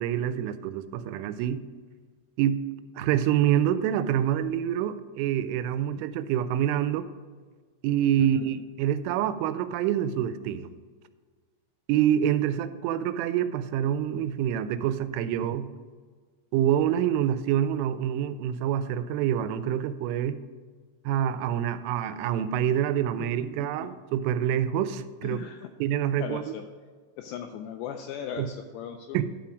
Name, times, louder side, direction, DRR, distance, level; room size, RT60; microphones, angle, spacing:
voice 1, 0.0-1.6 2.4-2.6 3.0-7.1 7.8-10.7 11.9-15.7 16.5-20.4 21.1-25.4 25.8-26.4 28.4-28.5 29.1-29.2, right 10 dB, 85° right, 12 dB, 3.0 m, -26 dB
voice 2, 8.2-8.7 25.2-25.7 26.2-26.6 27.2-29.2, left 8 dB, 85° left, 5 dB, 2.5 m, -38 dB
11.5 x 5.8 x 5.0 m, 1.5 s
omnidirectional pair, 5.5 m